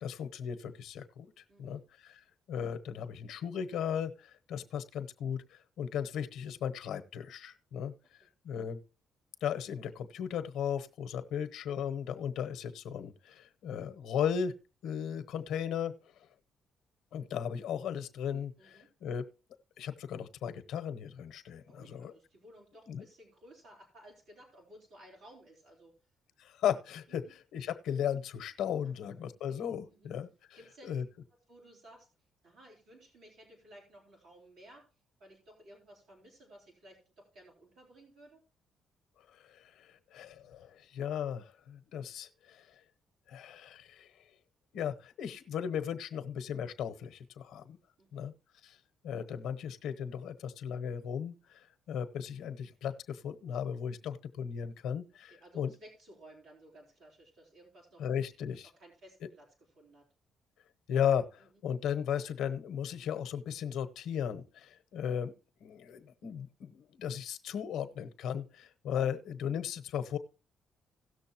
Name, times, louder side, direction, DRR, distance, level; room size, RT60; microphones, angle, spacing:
voice 1, 0.0-1.3 1.6-7.9 8.4-8.8 9.4-14.5 14.8-15.9 17.1-19.3 19.8-22.1 22.9-23.0 26.4-30.6 30.8-31.0 39.3-42.8 43.3-44.1 44.7-47.8 48.1-48.3 48.6-48.8 49.0-55.7 58.0-58.7 60.9-65.3 65.6-70.2, left 8 dB, 85° left, 9 dB, 0.9 m, -36 dB
voice 2, 1.5-1.8 18.6-18.9 21.7-25.9 27.1-27.3 28.8-29.6 29.9-30.1 30.6-31.0 31.5-32.1 32.4-34.8 35.2-38.4 48.0-48.2 55.3-58.1 58.8-59.5 59.8-60.0, right 1 dB, 90° right, -3 dB, 3.5 m, -56 dB
17.5 x 6.5 x 2.9 m, 0.34 s
cardioid pair, 90°, 0 cm